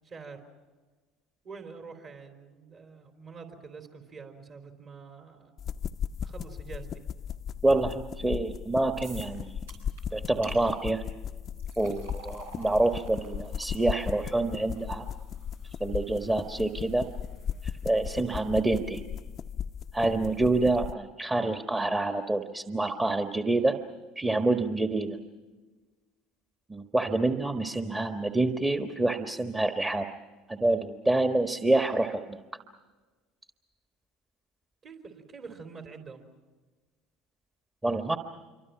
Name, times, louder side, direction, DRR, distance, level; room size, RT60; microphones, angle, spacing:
voice 1, 0.0-0.4 1.4-5.5 6.2-7.0 34.8-36.2, right 5 dB, 45° right, 5 dB, 3.8 m, -46 dB
sound 1, 5.6-20.9, left 8 dB, 45° left, 0.7 m, -37 dB
voice 2, 7.6-9.6 10.1-11.0 11.8-15.1 15.8-17.1 17.8-19.0 19.9-23.7 24.1-25.2 26.7-30.1 30.5-32.4 37.8-38.2, right 2 dB, 15° right, 6 dB, 1.4 m, -27 dB
sound 2, 9.0-9.4 9.7-10.0 10.4-10.6 11.2-18.4, right 2 dB, 90° right, 6.2 m, -52 dB
27.0 x 24.5 x 5.9 m, 1.3 s
hypercardioid pair, 70°, 0 cm